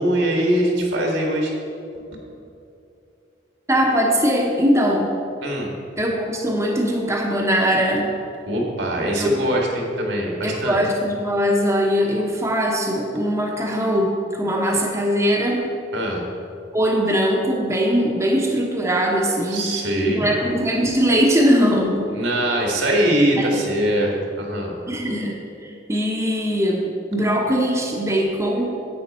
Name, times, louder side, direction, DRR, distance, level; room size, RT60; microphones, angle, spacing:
voice 1, 0.0-1.5 2.1-2.2 5.4-5.7 8.5-10.8 15.9-16.2 19.5-20.3 22.1-24.7, right 1 dB, 80° right, -1 dB, 1.9 m, -22 dB
voice 2, 3.7-5.1 6.0-8.0 9.2-9.3 10.4-15.7 16.7-19.6 20.0-22.1 23.4-23.5 24.9-25.4 25.6-28.7, equal, 15° right, -1 dB, 1.0 m, -21 dB
10.5 x 8.4 x 4.3 m, 2.7 s
head